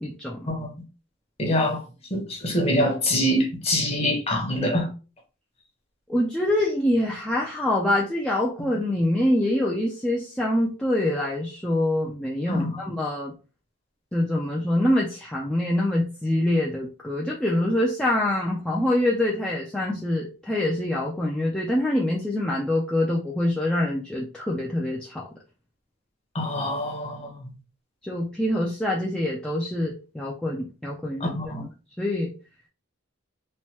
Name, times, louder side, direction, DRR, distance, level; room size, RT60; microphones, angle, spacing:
voice 1, 0.0-0.4 6.1-13.3 14.1-25.2 28.0-31.3 32.0-32.3, left 1 dB, 5° left, 0.3 m, -25 dB
voice 2, 1.4-1.8 2.1-4.9 12.5-12.8 26.3-27.4 31.2-31.6, left 1 dB, 30° left, 0.8 m, -25 dB
3.1 x 2.2 x 2.8 m
head